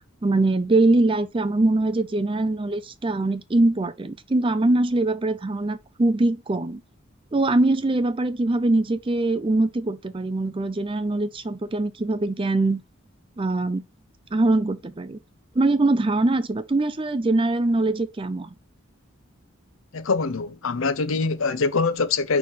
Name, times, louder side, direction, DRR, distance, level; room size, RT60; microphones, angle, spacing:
voice 1, 0.2-6.8 7.3-12.8 13.4-13.8 14.3-15.2 15.5-18.5, right 2 dB, 25° right, 0.5 m, -22 dB
voice 2, 19.9-22.4, left 4 dB, 75° left, 0.8 m, -24 dB
5.4 x 4.6 x 4.1 m
head